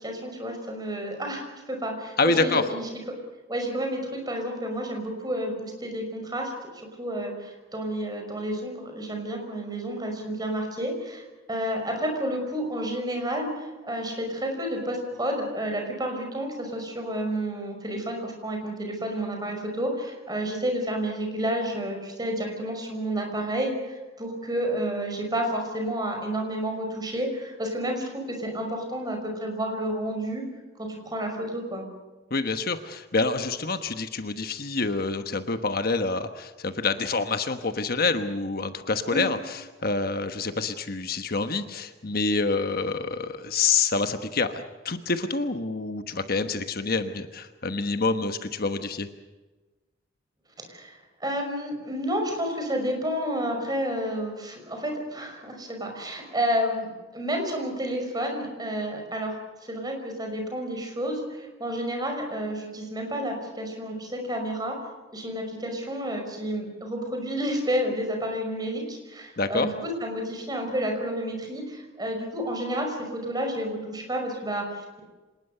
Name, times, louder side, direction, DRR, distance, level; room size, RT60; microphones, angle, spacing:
voice 1, 0.0-3.2 3.5-30.4 30.8-31.8 39.1-39.2 50.7-50.9 51.2-59.4 59.6-64.8 65.1-75.0, equal, 20° right, 3 dB, 5.5 m, -30 dB
voice 2, 2.2-2.7 32.3-44.5 44.8-49.1 69.4-69.7, left 4 dB, 50° left, 8 dB, 1.2 m, -27 dB
26.5 x 19.5 x 6.7 m, 1.2 s
head